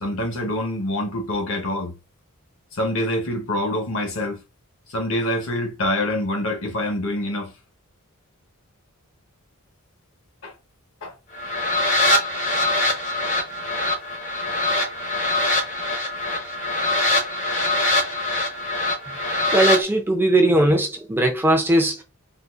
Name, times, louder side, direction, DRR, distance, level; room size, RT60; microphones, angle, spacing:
voice 1, 0.0-1.9 2.7-4.4 4.9-7.5 10.4-10.5 11.0-11.1, left 1 dB, 60° left, 1.1 m, -25 dB
sound 1, 11.3-19.8, left 2 dB, 35° left, 0.7 m, -23 dB
voice 2, 19.5-22.0, right 1 dB, 10° right, 0.5 m, -19 dB
3.8 x 2.4 x 2.4 m
head